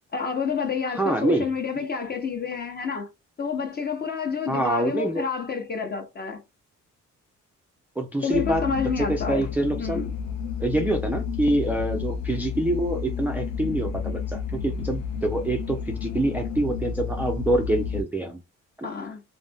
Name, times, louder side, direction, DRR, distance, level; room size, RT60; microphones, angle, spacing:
voice 1, 0.1-3.1 3.4-6.4 8.2-9.5 9.8-10.1 18.8-19.2, left 5 dB, 30° left, 0.9 m, -29 dB
voice 2, 0.9-1.5 1.8-1.9 4.5-5.2 8.0-10.0 10.6-18.4 18.8-18.9, right 1 dB, 5° right, 0.4 m, -26 dB
sound 1, 8.3-18.0, left 6 dB, 80° left, 0.5 m, -31 dB
2.5 x 2.0 x 3.4 m
cardioid pair, 90°, 30 cm